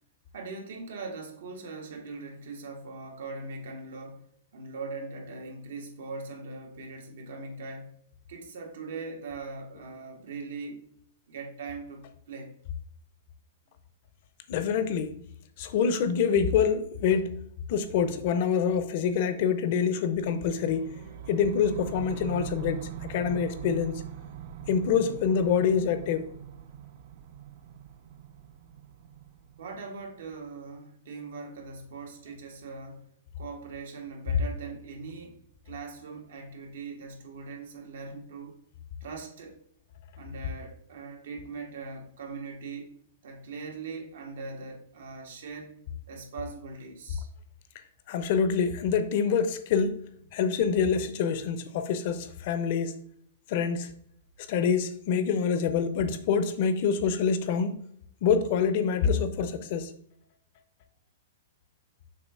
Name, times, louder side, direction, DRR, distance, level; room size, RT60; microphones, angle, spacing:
voice 1, 0.3-8.0 8.3-10.9 11.3-12.5 29.6-35.4 35.6-38.6 39.0-39.6 40.2-45.8 46.1-47.3, right 4 dB, 75° right, 1.6 m, -41 dB
voice 2, 14.5-15.1 15.6-17.4 17.7-20.9 21.3-24.0 24.7-26.3 48.1-50.1 50.3-53.0 53.5-53.9 54.5-57.8 58.2-59.9, left 6 dB, 50° left, 0.7 m, -26 dB
sound 1, 20.2-30.3, right 9 dB, 55° right, 0.5 m, -42 dB
6.6 x 2.8 x 5.5 m
hypercardioid pair, 145°, 0 cm